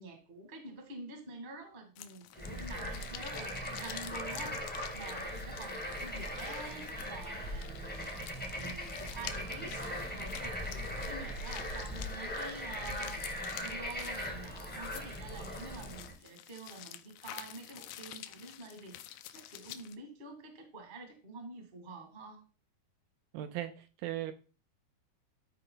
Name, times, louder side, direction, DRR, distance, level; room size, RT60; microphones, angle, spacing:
voice 1, 0.0-13.2 13.6-22.4, right 3 dB, 30° right, 3 dB, 0.8 m, -48 dB
sound 1, 2.0-20.0, left 13 dB, 85° left, 2.6 m, -49 dB
Bird / Frog, 2.3-16.1, equal, 10° left, 0.5 m, -40 dB
voice 2, 23.3-24.3, right 13 dB, 80° right, 9 dB, 2.3 m, -38 dB
12.0 x 4.7 x 3.9 m, 0.36 s
omnidirectional pair, 4.6 m